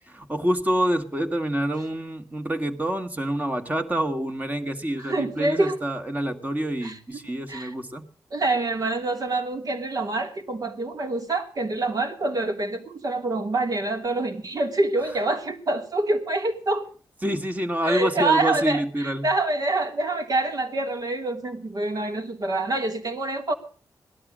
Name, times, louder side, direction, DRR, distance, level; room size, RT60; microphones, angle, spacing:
voice 1, 0.1-8.0 17.2-19.3, right 1 dB, 20° right, 7 dB, 2.1 m, -27 dB
voice 2, 5.0-5.8 6.8-7.0 7.5-7.7 8.3-16.9 17.8-23.5, right 2 dB, 55° right, 5 dB, 2.7 m, -26 dB
18.0 x 12.5 x 6.4 m, 0.41 s
wide cardioid pair, 90°, 8 cm